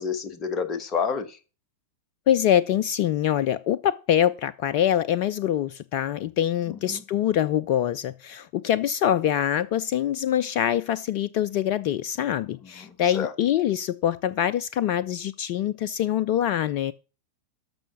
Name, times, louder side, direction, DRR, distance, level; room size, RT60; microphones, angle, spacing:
voice 1, 0.0-1.4 6.9-7.0 12.6-13.3, left 6 dB, 30° left, 1.4 m, -29 dB
voice 2, 2.3-16.9, left 10 dB, 45° left, 0.4 m, -24 dB
13.0 x 5.6 x 6.0 m
figure-of-eight pair, 90°, 0 cm